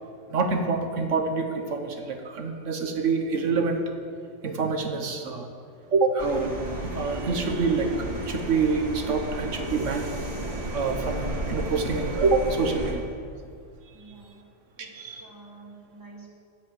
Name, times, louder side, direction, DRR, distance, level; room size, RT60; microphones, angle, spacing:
voice 1, 0.3-3.8 4.4-5.5 5.9-6.5 6.8-10.1 10.7-13.0 14.1-14.2 14.8-15.2, right 4 dB, 80° right, 5 dB, 1.4 m, -26 dB
sound 1, 6.2-12.9, right 1 dB, 35° right, 2.3 m, -33 dB
voice 2, 13.9-14.4 14.8-16.3, right 3 dB, 15° right, -1 dB, 1.8 m, -48 dB
10.5 x 7.9 x 8.0 m, 2.1 s
omnidirectional pair, 1.3 m